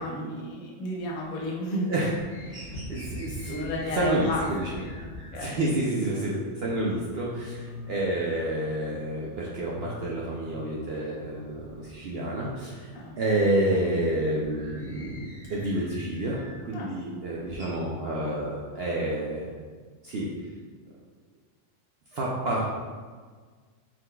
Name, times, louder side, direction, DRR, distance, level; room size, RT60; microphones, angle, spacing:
voice 1, 0.0-1.9 3.4-4.4 4.7-5.6 12.9-13.2 16.7-16.9, left 1 dB, 75° left, -2 dB, 1.2 m, -33 dB
sound 1, 1.0-1.7 2.0-5.4 5.9-6.0 6.3-6.4 6.6-9.1 9.3-11.9 12.3-16.7 17.1-17.7, left 1 dB, 15° right, 1.1 m, -43 dB
voice 2, 2.5-4.7 5.4-12.9 13.2-19.5 20.0-20.3 22.1-22.6, right 1 dB, 65° right, -4 dB, 0.6 m, -29 dB
4.5 x 3.8 x 2.2 m, 1.5 s
omnidirectional pair, 1.5 m